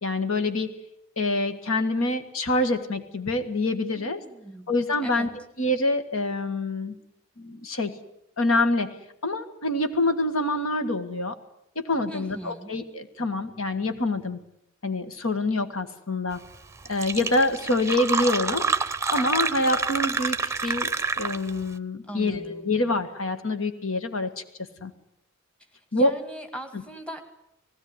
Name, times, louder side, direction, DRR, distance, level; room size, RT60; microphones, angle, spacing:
voice 1, 0.0-0.7 1.2-4.2 4.7-5.3 5.6-7.0 7.4-7.9 8.4-8.9 9.2-11.3 11.7-14.4 14.8-16.4 16.9-18.7 19.1-20.9 21.2-24.3 24.8-24.9 25.9-26.1, left 2 dB, 70° left, 9 dB, 1.7 m, -26 dB
voice 2, 3.9-4.7 5.0-5.3 12.1-12.7 22.0-22.7 25.9-27.2, right 1 dB, 5° left, 6 dB, 2.0 m, -39 dB
Fill (with liquid), 16.5-16.6 16.9-21.6, right 4 dB, 15° right, 0.8 m, -27 dB
19.0 x 17.0 x 9.6 m, 0.77 s
head